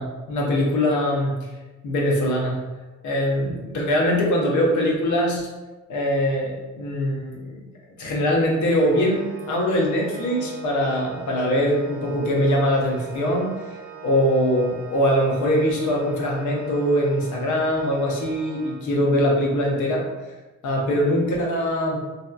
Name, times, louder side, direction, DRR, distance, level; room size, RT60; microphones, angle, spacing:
voice 1, 0.0-1.3 1.8-2.6 3.0-5.5 5.9-7.6 8.0-13.5 14.0-20.0 20.6-22.0, equal, 75° left, -2 dB, 0.8 m, -22 dB
Organ, 8.6-19.3, right 6 dB, 45° right, 0.5 m, -40 dB
2.8 x 2.2 x 2.4 m, 1.2 s
cardioid pair, 90°, 30 cm